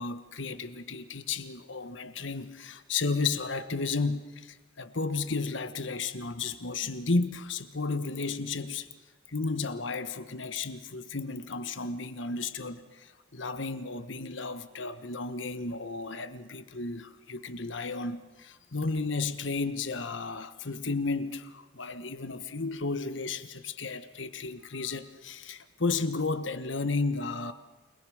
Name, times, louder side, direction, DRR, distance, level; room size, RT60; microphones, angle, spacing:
voice 1, 0.0-8.9 9.3-27.5, left 3 dB, 70° left, 1.4 m, -33 dB
29.0 x 20.5 x 6.5 m
head